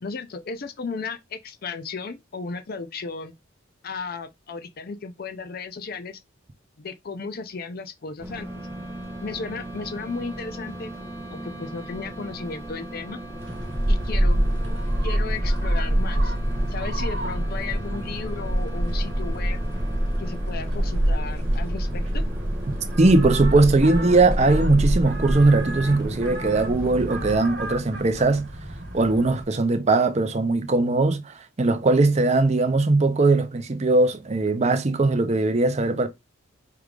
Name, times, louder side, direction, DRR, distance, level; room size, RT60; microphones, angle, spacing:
voice 1, 0.0-3.3 3.8-6.2 6.8-8.5 9.2-10.9 11.3-13.2 13.9-14.4 15.0-16.3 16.7-19.6 20.2-22.3, left 4 dB, 45° left, 0.5 m, -34 dB
sound 1, 8.2-27.4, equal, 10° right, 0.8 m, -28 dB
sound 2, 8.3-21.0, right 3 dB, 15° left, 1.2 m, -43 dB
sound 3, 13.4-29.4, right 1 dB, 55° right, 1.5 m, -32 dB
voice 2, 23.0-28.5 28.9-36.1, right 2 dB, 30° right, 0.5 m, -20 dB
4.6 x 3.4 x 2.3 m
head